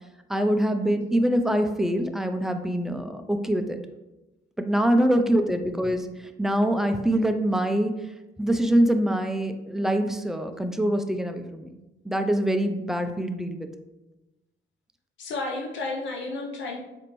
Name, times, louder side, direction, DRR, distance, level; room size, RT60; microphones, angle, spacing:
voice 1, 0.3-3.8 4.6-6.1 6.4-7.9 8.4-11.7 12.0-13.7, right 1 dB, ahead, 7 dB, 0.3 m, -24 dB
voice 2, 5.0-5.7 15.2-16.8, left 3 dB, 70° left, 1 dB, 0.6 m, -33 dB
4.2 x 2.5 x 2.9 m, 1.0 s
cardioid pair, 90°, 20 cm